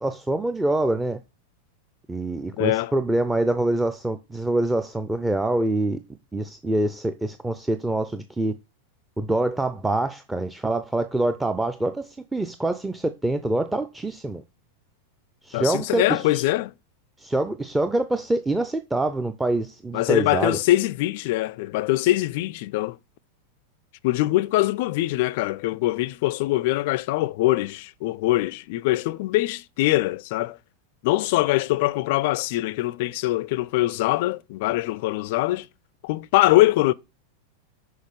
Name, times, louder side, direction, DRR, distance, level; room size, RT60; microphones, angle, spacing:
voice 1, 0.0-1.2 2.1-6.0 6.3-8.5 9.2-14.4 15.4-16.2 17.2-20.6, right 2 dB, 5° right, 0.5 m, -25 dB
voice 2, 2.6-2.9 15.5-16.7 19.9-23.0 24.0-30.6 31.0-35.7 36.0-36.9, left 17 dB, 50° left, 0.3 m, -23 dB
6.4 x 4.7 x 5.1 m
figure-of-eight pair, 90°, 0 cm